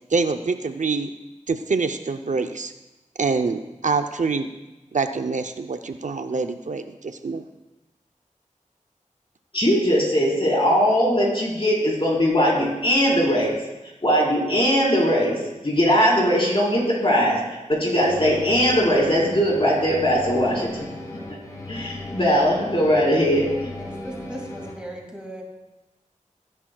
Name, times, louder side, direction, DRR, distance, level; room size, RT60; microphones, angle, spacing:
voice 1, 0.1-1.1 1.5-2.7 3.2-4.5 4.9-7.4, right 4 dB, 70° right, 7 dB, 0.6 m, -25 dB
voice 2, 9.5-13.6 14.0-15.4 15.6-17.4 17.7-20.9 21.7-23.7, equal, 45° left, -4 dB, 4.2 m, -20 dB
sound 1, 18.0-24.7, left 1 dB, 30° left, 3.7 m, -36 dB
voice 3, 23.8-25.4, right 1 dB, 5° right, -1 dB, 2.3 m, -38 dB
17.0 x 9.9 x 2.3 m, 1.0 s
wide cardioid pair, 65°, 13 cm